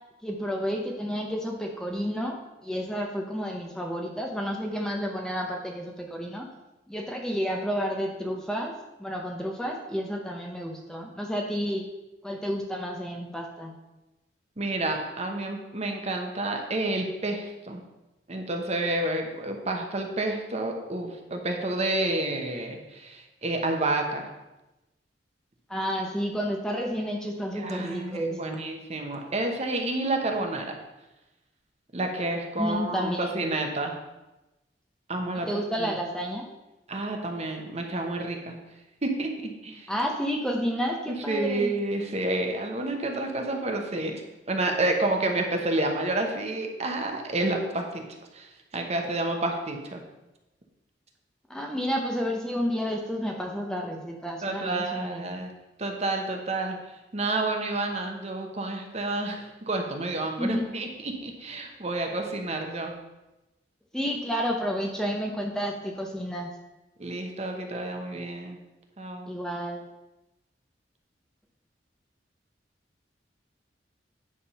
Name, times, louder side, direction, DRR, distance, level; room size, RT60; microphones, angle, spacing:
voice 1, 0.2-6.5 6.9-11.9 12.2-13.7 25.7-28.6 32.6-33.5 35.5-36.5 39.9-41.7 51.5-55.3 60.4-60.7 63.9-66.5 69.3-69.8, equal, 5° left, 1 dB, 0.7 m, -31 dB
voice 2, 14.6-17.8 18.3-24.3 27.5-30.8 31.9-34.0 35.1-35.9 36.9-38.6 39.0-39.9 41.1-44.2 44.5-48.1 48.3-50.0 54.4-55.5 55.8-56.8 57.1-63.0 67.0-68.6 69.0-69.3, right 2 dB, 35° right, 3 dB, 1.0 m, -29 dB
9.7 x 3.6 x 5.6 m, 1.0 s
head